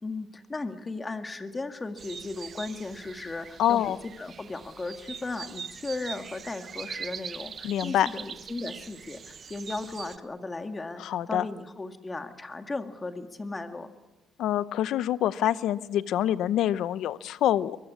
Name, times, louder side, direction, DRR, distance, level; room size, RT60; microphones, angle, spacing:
voice 1, 0.0-13.9, left 3 dB, 20° left, 7 dB, 2.0 m, -36 dB
sound 1, 2.0-10.2, right 6 dB, 45° right, 1.0 m, -42 dB
voice 2, 3.6-4.0 7.6-8.1 11.0-11.5 14.4-17.8, left 11 dB, 80° left, 16 dB, 0.8 m, -26 dB
23.0 x 21.5 x 8.4 m, 1.1 s
cardioid pair, 110°, 0 cm